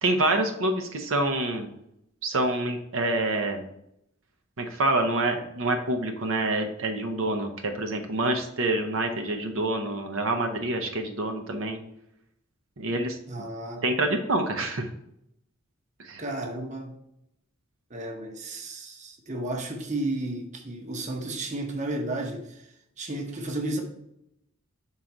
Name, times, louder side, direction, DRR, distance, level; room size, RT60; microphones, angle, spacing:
voice 1, 0.0-1.7 2.2-3.6 4.6-7.5 7.8-11.8 12.8-13.2 13.8-14.9 16.0-16.2, right 2 dB, 75° right, 0.8 m, -27 dB
voice 2, 13.3-13.8 16.2-16.9 17.9-22.7 23.0-23.8, right 2 dB, 35° right, 0.8 m, -33 dB
5.7 x 3.8 x 4.5 m
head